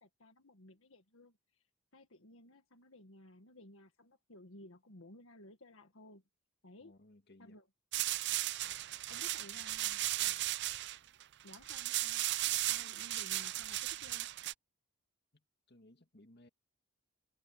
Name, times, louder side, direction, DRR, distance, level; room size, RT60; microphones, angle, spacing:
voice 1, 0.0-1.6 1.9-6.2 6.6-6.9 7.4-7.6 9.1-10.0 11.4-14.3, left 1 dB, 70° left, 1.7 m, -57 dB
voice 2, 6.8-7.6 10.2-10.5 12.8-12.9 15.3-16.5, left 1 dB, 50° left, 2.2 m, -62 dB
sound 1, 7.9-14.5, right 15 dB, 50° right, 0.5 m, -36 dB
head